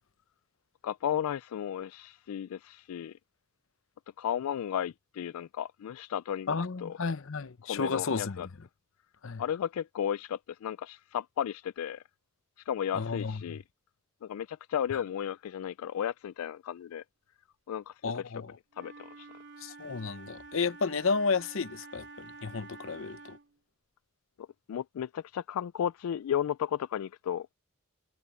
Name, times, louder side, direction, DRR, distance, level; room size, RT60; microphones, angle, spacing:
voice 1, 0.8-3.2 4.2-7.0 7.7-8.5 9.4-12.0 12.7-13.6 14.2-17.0 17.7-18.3 18.8-19.3 24.4-27.5, left 9 dB, 80° left, 0.3 m, -34 dB
voice 2, 6.5-8.5 9.2-9.4 12.9-13.6 14.9-15.0 18.0-18.6 19.6-23.4, left 4 dB, 65° left, 0.7 m, -32 dB
Wind instrument woodwind instrument, 18.7-23.6, right 3 dB, 55° right, 2.9 m, -49 dB
head